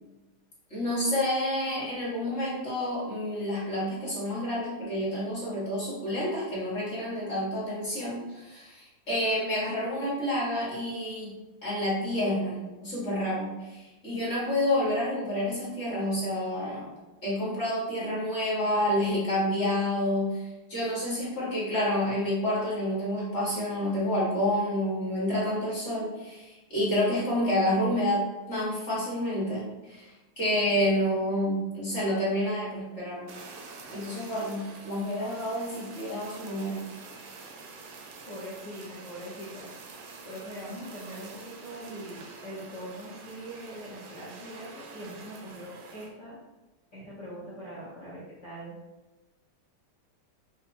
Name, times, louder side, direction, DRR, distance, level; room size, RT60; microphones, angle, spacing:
voice 1, 0.7-11.3 11.6-16.9 17.2-33.3 33.9-36.9, left 1 dB, 35° left, -7 dB, 1.4 m, -29 dB
Fire, 33.3-46.1, right 4 dB, 75° right, 1.3 m, -46 dB
voice 2, 38.3-39.7 40.2-46.4 46.9-48.8, equal, 50° left, -8 dB, 0.9 m, -42 dB
5.6 x 2.6 x 2.6 m, 1.1 s
omnidirectional pair, 2.4 m